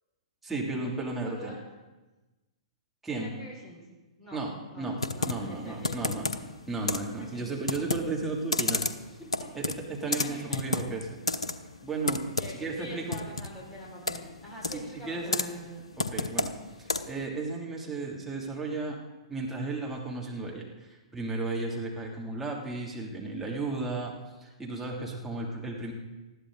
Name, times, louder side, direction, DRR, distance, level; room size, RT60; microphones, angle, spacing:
voice 1, 0.4-1.6 3.0-3.3 4.3-4.5 4.8-5.0 5.2-6.3 6.7-8.9 9.5-9.6 10.0-11.2 11.8-12.2 12.5-13.2 15.0-16.5 16.8-19.0 19.3-24.1 24.4-25.9, right 3 dB, 5° right, -3 dB, 3.1 m, -34 dB
voice 2, 1.2-1.6 3.1-3.8 4.2-4.4 4.7-6.6 7.2-7.5 9.4-9.5 10.0-10.9 12.4-15.5, right 1 dB, 15° left, -6 dB, 5.7 m, -45 dB
Computer keyboard, 5.0-17.3, left 3 dB, 80° left, 0.9 m, -33 dB
20.0 x 14.0 x 4.1 m, 1.1 s
figure-of-eight pair, 110°, 3 cm